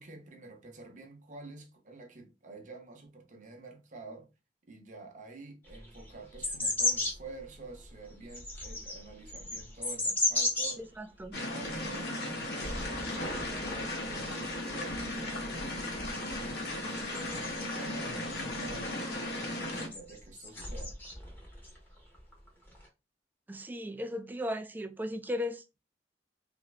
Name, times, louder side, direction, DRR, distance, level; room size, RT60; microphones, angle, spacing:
voice 1, 0.0-4.3 4.7-10.8 11.5-21.0, right 2 dB, 45° right, 0.7 m, -49 dB
sound 1, 5.7-7.2 7.8-10.7 11.2-11.3 11.6-11.9 12.6-13.8 14.1-18.0 18.3-18.9 19.7-21.8 22.1-22.9, left 2 dB, 10° left, 0.8 m, -35 dB
voice 2, 10.8-11.4 23.5-25.6, left 1 dB, 10° right, 0.3 m, -36 dB
sound 2, 11.3-19.9, left 1 dB, 65° left, 0.8 m, -36 dB
2.7 x 2.5 x 3.1 m
head